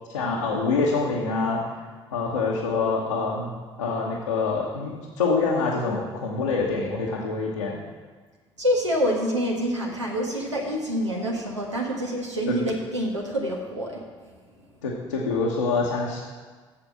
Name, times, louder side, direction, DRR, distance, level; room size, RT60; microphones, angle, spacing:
voice 1, 0.1-1.7 2.1-3.5 3.8-7.8 12.5-12.6 14.8-16.2, left 4 dB, 80° left, -4 dB, 1.0 m, -25 dB
voice 2, 8.6-14.0, equal, 85° right, -1 dB, 1.4 m, -26 dB
8.2 x 6.9 x 7.4 m, 1.4 s
figure-of-eight pair, 50°, 15 cm